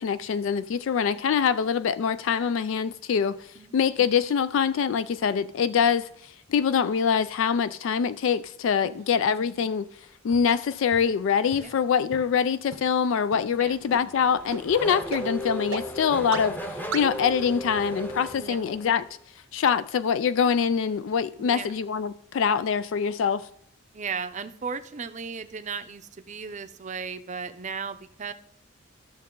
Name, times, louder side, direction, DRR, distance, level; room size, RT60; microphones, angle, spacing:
voice 1, 0.0-3.4 3.7-9.9 10.2-16.6 16.9-19.1 19.5-23.5, left 7 dB, 65° left, 0.3 m, -24 dB
sound 1, 10.3-10.4 10.9-11.0 11.5-11.6 12.1-12.2 12.7-12.8 13.3-13.4 13.9-14.0 14.5-14.6 15.1-15.2 15.7-15.8 16.3-16.4 16.9-17.0, right 4 dB, 85° right, 1.0 m, -33 dB
Race car auto racing / Accelerating revving vroom, 13.5-19.1, equal, 10° left, 0.7 m, -36 dB
voice 2, 21.4-21.7 23.9-28.3, right 5 dB, 35° right, 0.6 m, -36 dB
13.0 x 6.5 x 3.7 m
head